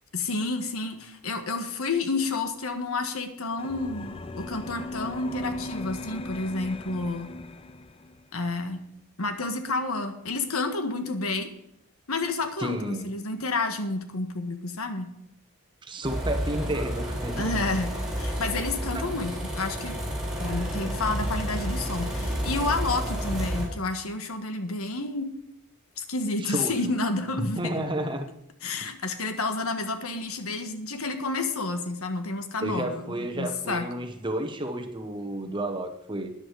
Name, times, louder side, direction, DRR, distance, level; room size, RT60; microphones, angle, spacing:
voice 1, 0.1-7.3 8.3-8.8 9.2-11.5 12.1-15.1 17.4-20.0 20.4-25.3 26.0-27.6 28.6-33.9, left 3 dB, 85° left, 8 dB, 1.6 m, -30 dB
sound 1, 3.6-8.2, left 2 dB, 25° left, 0.6 m, -38 dB
voice 2, 12.6-13.1 15.8-17.6 26.5-26.7 27.4-28.3 32.6-36.3, right 1 dB, 20° right, 5 dB, 1.2 m, -31 dB
sound 2, 16.0-23.6, equal, ahead, 4.4 m, -30 dB
13.5 x 10.0 x 4.8 m, 0.80 s
head